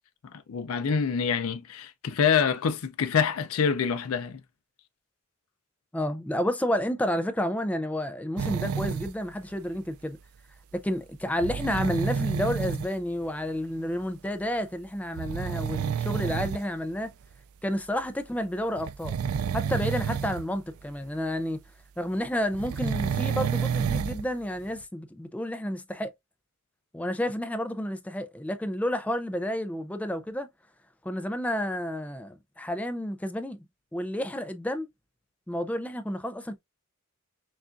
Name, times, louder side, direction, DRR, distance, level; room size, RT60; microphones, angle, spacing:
voice 1, 0.2-4.4, left 6 dB, 80° left, 0.5 m, -26 dB
voice 2, 5.9-10.2 10.7-17.1 17.6-19.2 19.5-21.6 22.0-26.1 26.9-30.5 31.0-33.6 33.9-34.9 35.5-36.6, equal, 5° left, 0.4 m, -30 dB
sound 1, 8.4-9.1 11.4-12.9 14.3-14.4 15.2-16.6 17.3-17.4 18.8-20.5 20.8-20.9 22.5-24.3 24.8-24.9, right 6 dB, 90° right, 0.4 m, -29 dB
6.1 x 2.4 x 2.5 m
head